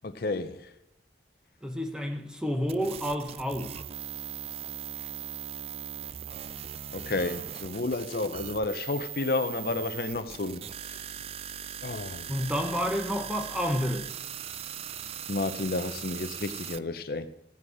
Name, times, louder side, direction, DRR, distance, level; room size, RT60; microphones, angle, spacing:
voice 1, 0.0-0.6 6.9-10.6 11.8-12.3 15.3-17.3, left 2 dB, 55° left, 0.6 m, -31 dB
voice 2, 1.6-3.8 12.3-14.1, equal, 5° right, 0.9 m, -30 dB
sound 1, 2.7-16.8, right 10 dB, 35° right, 0.3 m, -39 dB
15.0 x 7.7 x 4.8 m
head